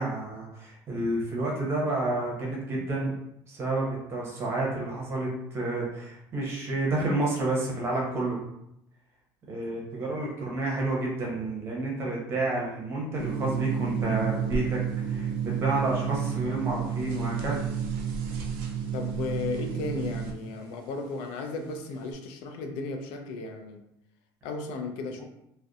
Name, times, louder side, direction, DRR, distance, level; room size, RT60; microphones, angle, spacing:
voice 1, 0.0-3.2 3.5-8.4 9.5-14.8 15.1-17.7, right 2 dB, 30° right, -3 dB, 0.7 m, -30 dB
sound 1, 13.2-20.3, right 7 dB, 75° right, 0.4 m, -30 dB
voice 2, 18.9-23.8 24.4-25.2, left 3 dB, 80° left, 5 dB, 0.4 m, -35 dB
2.6 x 2.1 x 2.4 m, 0.81 s
cardioid pair, 165°, 8 cm